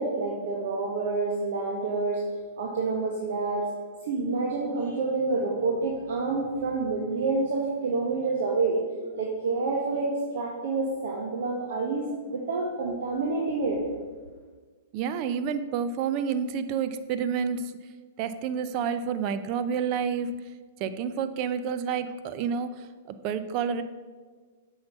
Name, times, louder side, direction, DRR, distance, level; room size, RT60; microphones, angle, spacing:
voice 1, 0.0-2.2 2.6-3.7 4.0-8.8 9.1-13.8, right 3 dB, 65° right, -2 dB, 1.4 m, -28 dB
voice 2, 14.9-17.7 18.2-20.3 20.8-23.8, right 7 dB, 45° right, 11 dB, 0.6 m, -29 dB
7.9 x 5.6 x 5.4 m, 1.5 s
hypercardioid pair, 110°, 0 cm